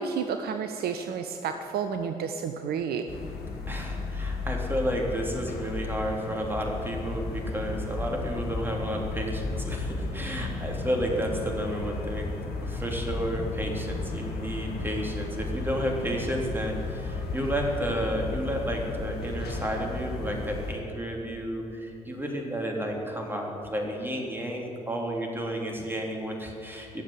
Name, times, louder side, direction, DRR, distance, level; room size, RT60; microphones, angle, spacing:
voice 1, 0.0-3.0, right 6 dB, 55° right, 7 dB, 0.7 m, -31 dB
sound 1, 3.1-20.8, left 3 dB, 55° left, 1.9 m, -34 dB
voice 2, 3.7-12.3 12.6-27.0, equal, 10° right, 0 dB, 3.4 m, -31 dB
16.5 x 7.3 x 9.5 m, 2.9 s
figure-of-eight pair, 45°, 19 cm